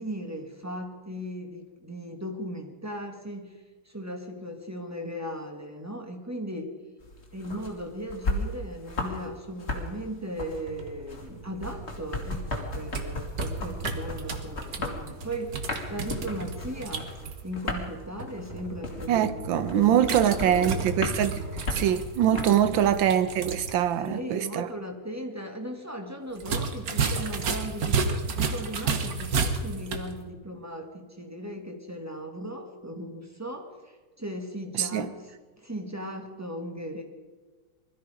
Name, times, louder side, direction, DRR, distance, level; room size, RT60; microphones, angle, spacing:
voice 1, 0.0-3.6 3.8-6.7 7.3-15.6 15.9-17.1 17.4-20.8 22.7-22.8 24.0-35.3 35.6-37.0, equal, 10° right, 1.6 m, -37 dB
sound 1, 7.0-9.3 9.5-22.9, left 2 dB, 30° left, 2.3 m, -35 dB
sound 2, 10.7-23.1, right 1 dB, 25° right, 1.2 m, -42 dB
sound 3, 12.7-17.4 20.0-23.7 24.0-24.1 26.4-30.1, right 4 dB, 50° right, 1.5 m, -31 dB
voice 2, 19.1-21.4 21.7-24.7 34.8-35.1, right 10 dB, 70° right, 1.5 m, -23 dB
21.0 x 13.5 x 5.1 m
omnidirectional pair, 2.4 m